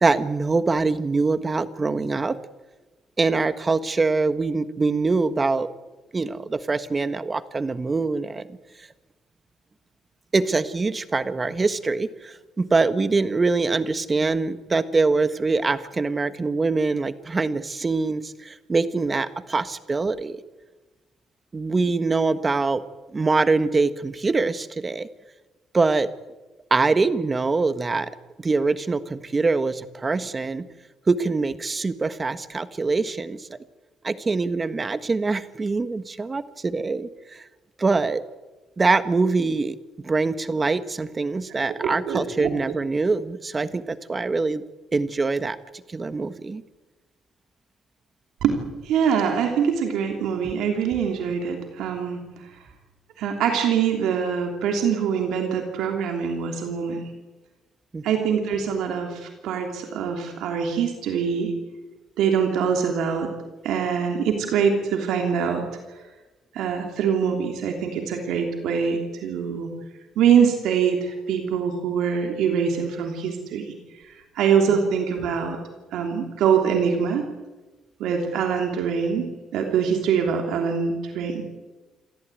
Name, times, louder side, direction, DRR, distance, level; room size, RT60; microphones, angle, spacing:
voice 1, 0.0-2.4 3.2-5.7 6.1-8.5 10.3-20.4 21.5-22.8 23.1-25.1 25.7-26.1 26.7-28.1 28.4-30.7 31.1-33.5 34.0-37.4 37.8-38.2 38.8-39.8 40.0-44.6 44.9-45.6 45.9-46.6 57.9-58.0, right 3 dB, 25° right, 12 dB, 1.4 m, -24 dB
voice 2, 41.8-42.5 48.4-52.2 53.2-57.0 58.0-61.5 62.2-63.3 63.6-65.6 65.9-66.0 66.5-69.7 70.2-73.7 74.0-75.6 75.9-77.3 78.0-79.3 79.5-81.4, right 7 dB, 80° right, 3 dB, 3.2 m, -24 dB
28.0 x 13.5 x 9.2 m, 1.2 s
cardioid pair, 95°, 0 cm